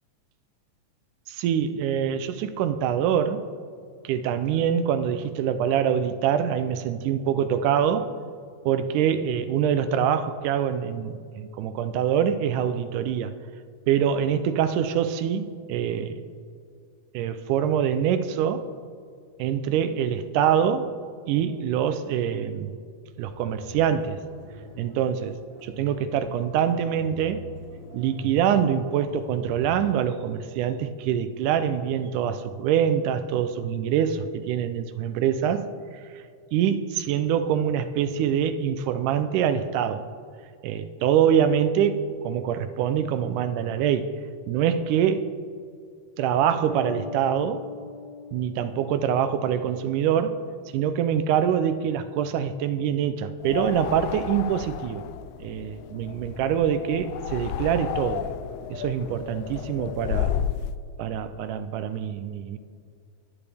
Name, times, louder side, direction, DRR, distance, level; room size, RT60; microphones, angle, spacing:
voice 1, 1.3-3.5 4.0-8.1 8.7-13.3 13.9-16.3 17.1-18.7 19.4-20.9 21.3-22.7 23.2-24.2 24.8-27.4 27.9-35.7 35.9-36.2 36.5-40.1 40.6-44.1 44.5-45.3 46.2-47.6 48.3-50.4 50.7-55.0 55.4-58.3 58.7-60.4 61.0-62.6, right 9 dB, 85° right, 11 dB, 2.1 m, -25 dB
sound 1, 23.2-29.8, left 1 dB, 15° left, 1.4 m, -43 dB
Bass guitar, 46.7-50.2, left 3 dB, 55° right, 2.8 m, -42 dB
sound 2, 53.4-60.7, left 10 dB, 80° left, 1.8 m, -32 dB
21.0 x 9.0 x 3.4 m, 2.3 s
omnidirectional pair, 3.6 m